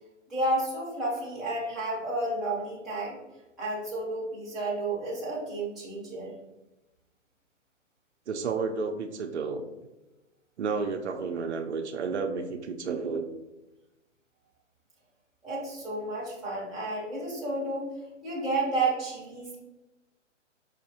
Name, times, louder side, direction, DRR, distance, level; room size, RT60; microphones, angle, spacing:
voice 1, 0.3-3.2 3.6-6.3 15.4-17.9 18.2-19.5, right 2 dB, ahead, -8 dB, 0.6 m, -31 dB
voice 2, 8.3-9.6 10.6-13.2, right 5 dB, 65° right, 5 dB, 0.5 m, -31 dB
4.9 x 2.6 x 2.7 m, 1.0 s
figure-of-eight pair, 130°, 37 cm